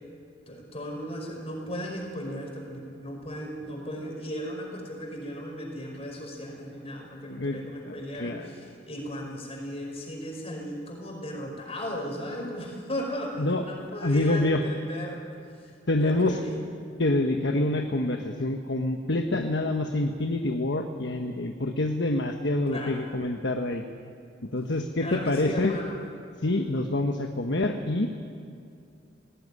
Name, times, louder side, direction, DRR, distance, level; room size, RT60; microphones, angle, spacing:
voice 1, 0.5-15.2 15.6-16.6 22.7-23.0 25.0-26.0, equal, 35° left, 1 dB, 5.2 m, -36 dB
voice 2, 7.9-8.5 13.4-13.6 14.0-14.6 15.9-16.4 17.0-23.8 24.5-25.8 26.4-28.1, left 2 dB, 65° left, 5 dB, 1.2 m, -26 dB
19.0 x 17.5 x 9.9 m, 2.5 s
head